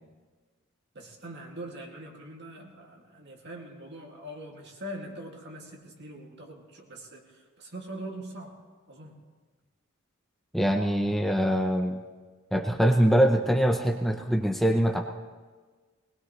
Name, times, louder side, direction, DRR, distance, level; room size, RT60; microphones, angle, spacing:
voice 1, 0.9-8.6 8.9-9.2, right 1 dB, 55° right, 0 dB, 2.4 m, -42 dB
voice 2, 10.5-12.0 12.5-15.0, equal, ahead, 3 dB, 0.7 m, -23 dB
21.5 x 19.5 x 3.2 m, 1.4 s
head